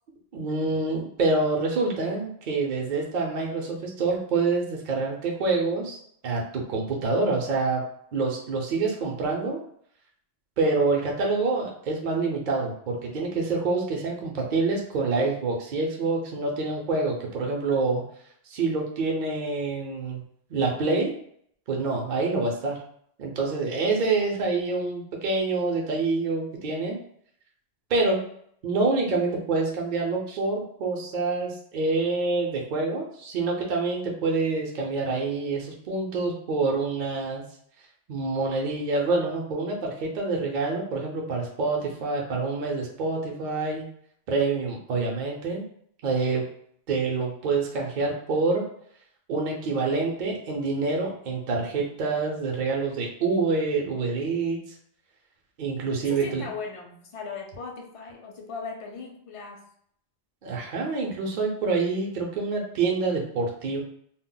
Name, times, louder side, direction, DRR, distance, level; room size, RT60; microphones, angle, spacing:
voice 1, 0.3-6.0 6.2-7.8 8.1-9.6 10.6-18.0 18.5-20.2 20.5-21.1 21.7-22.8 23.2-27.0 27.9-28.3 28.6-37.4 38.1-43.8 44.3-45.6 46.0-46.5 46.9-48.6 49.3-54.6 55.6-56.4 60.4-63.8, right 3 dB, 55° right, -1 dB, 0.6 m, -26 dB
voice 2, 56.1-59.6, left 5 dB, 50° left, 1 dB, 0.4 m, -38 dB
2.2 x 2.0 x 3.7 m, 0.66 s
omnidirectional pair, 1.1 m